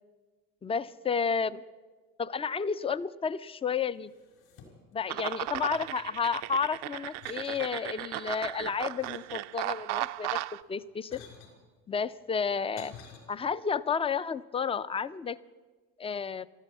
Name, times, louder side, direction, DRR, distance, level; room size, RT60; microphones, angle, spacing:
voice 1, 0.6-1.6 2.2-4.1 4.9-10.4 10.7-11.3 11.9-12.9 13.3-15.4 16.0-16.5, left 6 dB, 15° left, 16 dB, 0.4 m, -31 dB
sound 1, 4.0-5.0 5.2-6.6 7.1-7.7 8.3-9.8 10.6-11.6 12.3-13.2, left 7 dB, 65° left, 5.6 m, -53 dB
sound 2, 5.1-10.6, right 17 dB, 65° right, 0.6 m, -36 dB
13.0 x 13.0 x 8.2 m, 1.3 s
hypercardioid pair, 80°, 45 cm